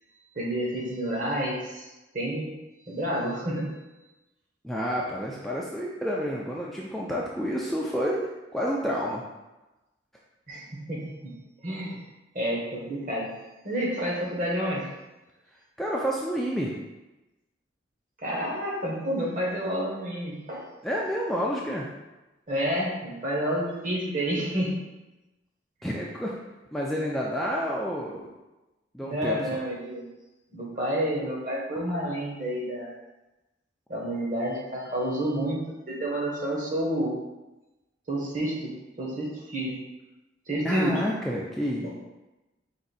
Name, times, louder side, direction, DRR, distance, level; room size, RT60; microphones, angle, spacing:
voice 1, 0.3-1.9 2.1-2.5 2.9-3.7 10.5-11.3 11.6-12.0 12.3-13.3 13.6-14.9 18.2-20.6 22.5-24.8 29.0-30.0 30.5-33.0 33.9-37.1 38.1-38.7 39.0-39.8 40.5-41.0 41.8-41.9, right 1 dB, 40° right, -3 dB, 1.1 m, -29 dB
voice 2, 4.6-8.2 8.5-9.2 15.8-16.7 20.8-21.9 25.8-26.3 26.7-28.3 28.9-29.4 40.6-41.9, equal, ahead, -4 dB, 0.3 m, -29 dB
4.8 x 2.6 x 4.0 m, 1.0 s
head